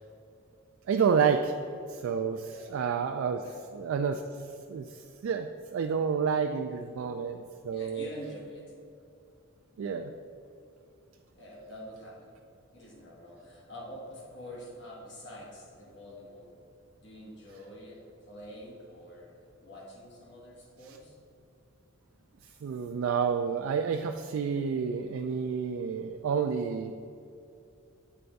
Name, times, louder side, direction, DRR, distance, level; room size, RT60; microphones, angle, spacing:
voice 1, 0.9-1.5 1.9-3.4 3.8-4.2 4.7-8.1 9.8-10.1 22.6-26.9, right 6 dB, 80° right, 5 dB, 0.3 m, -29 dB
voice 2, 7.7-8.7 11.3-12.4 12.7-16.6 17.0-21.2, left 1 dB, 55° left, -3 dB, 1.4 m, -46 dB
8.2 x 3.3 x 5.2 m, 2.6 s
head